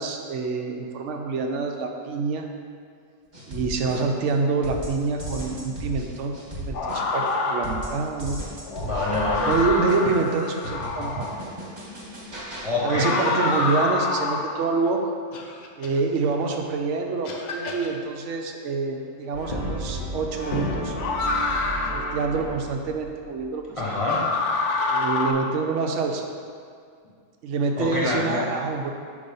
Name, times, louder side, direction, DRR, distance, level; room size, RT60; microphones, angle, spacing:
voice 1, 0.0-2.5 3.5-8.4 9.5-11.3 12.4-15.1 15.8-21.0 21.9-23.8 24.9-26.3 27.4-28.9, right 4 dB, 70° right, 3 dB, 0.9 m, -26 dB
sound 1, 3.3-4.3 4.6-7.3 7.6-12.7, right 1 dB, 35° right, 1.3 m, -36 dB
sound 2, 6.7-8.0 8.6-11.5 12.7-14.7 15.3-15.9 16.7-16.8 17.2-17.9 19.3-19.4 21.0-22.2 23.8-25.3, left 3 dB, 75° left, 0.9 m, -27 dB
voice 2, 8.8-9.5 12.6-13.2 23.8-24.3 27.8-28.6, left 2 dB, 30° left, -7 dB, 0.9 m, -26 dB
Brass instrument, 19.3-23.6, equal, 45° left, 0.5 m, -32 dB
5.3 x 3.4 x 5.2 m, 2.1 s
omnidirectional pair, 1.3 m